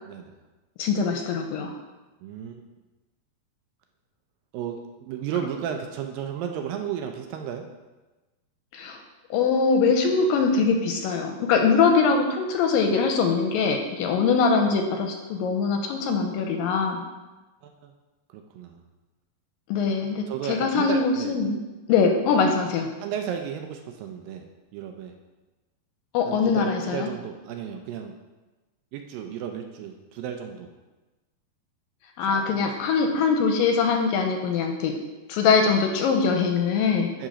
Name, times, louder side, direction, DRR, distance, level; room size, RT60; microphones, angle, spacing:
voice 1, 0.8-1.7 8.7-9.0 9.3-17.0 19.7-21.6 21.9-22.9 26.1-27.1 32.2-35.0 35.3-37.1, left 5 dB, 80° left, 4 dB, 2.2 m, -22 dB
voice 2, 2.2-2.6 4.5-7.7 17.6-17.9 18.3-18.8 20.3-21.3 23.0-24.5 24.7-25.1 26.3-28.2 28.9-30.7 32.3-32.7 37.2-37.3, right 8 dB, 80° right, 4 dB, 2.2 m, -33 dB
10.5 x 3.8 x 5.0 m, 1.2 s
omnidirectional pair, 4.4 m